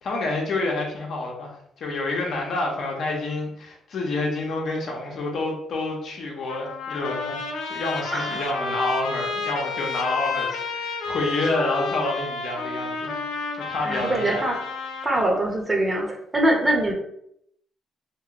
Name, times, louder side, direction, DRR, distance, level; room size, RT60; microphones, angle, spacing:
voice 1, 0.0-7.4 7.6-13.2 13.5-14.4, left 2 dB, 65° left, 0 dB, 0.8 m, -28 dB
Trumpet, 6.5-15.4, left 4 dB, 90° left, 0.5 m, -31 dB
voice 2, 8.1-8.4 13.8-14.6 15.0-16.9, right 1 dB, 25° right, 1 dB, 0.7 m, -23 dB
2.9 x 2.4 x 2.9 m, 0.72 s
cardioid pair, 90°, 0 cm